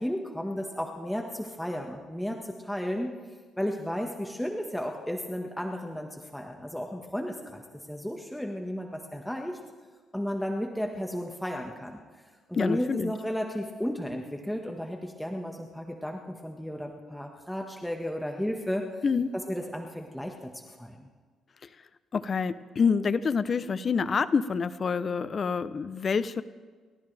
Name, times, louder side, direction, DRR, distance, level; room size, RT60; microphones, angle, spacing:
voice 1, 0.0-2.4 2.6-3.1 3.6-7.6 7.9-9.6 10.1-12.0 12.5-18.8 19.3-20.5 20.8-21.1, equal, 5° left, 1 dB, 1.5 m, -33 dB
voice 2, 12.5-13.1 19.0-19.3 22.1-26.4, left 5 dB, 45° left, 14 dB, 0.7 m, -27 dB
30.0 x 13.5 x 3.4 m, 1.5 s
cardioid pair, 90°, 0 cm